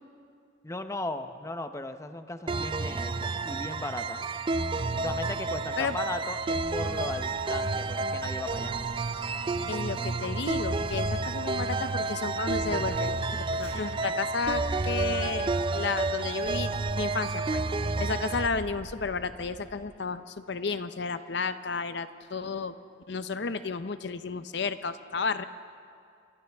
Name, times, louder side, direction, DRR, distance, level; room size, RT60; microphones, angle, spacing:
voice 1, 0.6-4.2 5.0-8.8, left 2 dB, 15° left, 8 dB, 0.7 m, -37 dB
sound 1, 2.5-18.5, right 3 dB, 25° right, 0.5 m, -30 dB
sound 2, 5.9-6.1 6.5-8.1 8.5-10.1 10.5-12.1 12.5-14.1 14.4-16.0 16.4-18.1 18.4-20.1, right 1 dB, 60° right, 1.8 m, -48 dB
voice 2, 9.7-13.1 13.5-16.7 17.0-17.6 18.0-22.8 23.1-25.4, left 4 dB, 65° left, 11 dB, 0.7 m, -32 dB
sound 3, 13.5-14.5, right 1 dB, 85° right, 5.5 m, -52 dB
30.0 x 25.0 x 3.5 m, 2.4 s
head